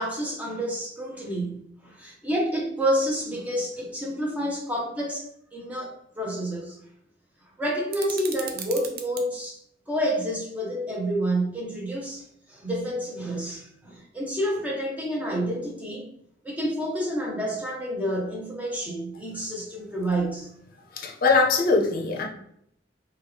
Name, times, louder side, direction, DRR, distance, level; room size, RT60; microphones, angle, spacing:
voice 1, 0.0-6.8 7.6-9.6 9.9-16.1 16.4-20.5, equal, 10° right, -2 dB, 0.8 m, -29 dB
sound 1, 7.9-9.3, right 6 dB, 50° right, 0.5 m, -37 dB
voice 2, 20.9-22.2, left 4 dB, 50° left, 0 dB, 0.6 m, -21 dB
3.1 x 2.3 x 3.4 m, 0.73 s
head